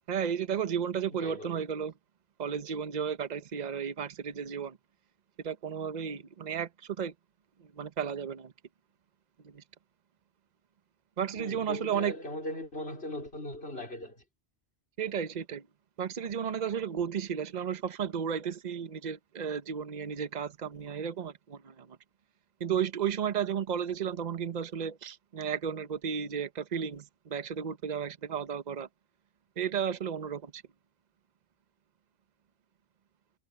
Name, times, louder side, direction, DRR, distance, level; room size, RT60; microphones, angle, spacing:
voice 1, 0.1-1.9 2.4-4.8 5.4-7.1 7.6-8.5 9.4-9.6 11.2-12.1 15.0-15.6 16.0-22.0 22.6-28.9 29.6-30.6, right 7 dB, 45° right, 0.9 m, -33 dB
voice 2, 1.1-1.6 11.4-14.2, left 1 dB, 75° left, 4.4 m, -39 dB
omnidirectional pair, 1.1 m